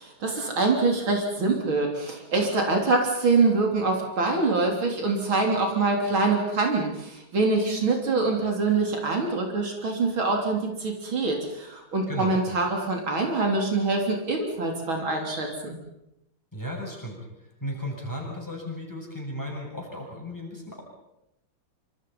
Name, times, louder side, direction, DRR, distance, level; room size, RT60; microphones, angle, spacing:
voice 1, 0.0-15.8, right 3 dB, 75° right, 1 dB, 4.4 m, -25 dB
voice 2, 16.5-17.2 17.6-20.8, left 1 dB, 10° left, -1 dB, 7.6 m, -35 dB
26.5 x 26.5 x 5.6 m, 0.85 s
omnidirectional pair, 2.2 m